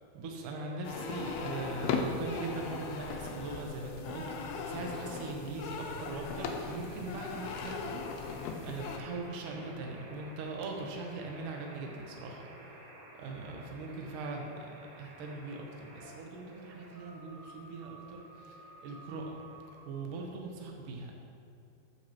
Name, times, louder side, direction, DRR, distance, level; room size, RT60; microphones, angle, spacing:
voice 1, 0.1-12.8 13.1-19.4 19.9-21.1, right 3 dB, 80° right, 1 dB, 1.8 m, -41 dB
sound 1, 0.6-19.8, right 1 dB, 55° right, 3.1 m, -52 dB
sound 2, 0.8-9.0, left 5 dB, 80° left, 2.4 m, -38 dB
14.0 x 7.4 x 3.0 m, 2.5 s
omnidirectional pair, 5.1 m